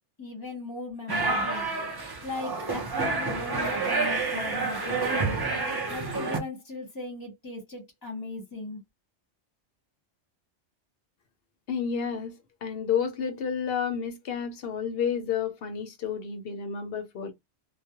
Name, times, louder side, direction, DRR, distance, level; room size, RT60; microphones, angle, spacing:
voice 1, 0.2-1.7 2.2-5.4 5.9-8.8, left 2 dB, 20° left, 0.8 m, -38 dB
sound 1, 1.1-6.4, right 3 dB, 30° right, 0.4 m, -29 dB
voice 2, 11.7-12.4 12.6-17.3, left 7 dB, 65° left, 0.7 m, -30 dB
2.3 x 2.1 x 2.7 m
omnidirectional pair, 1.2 m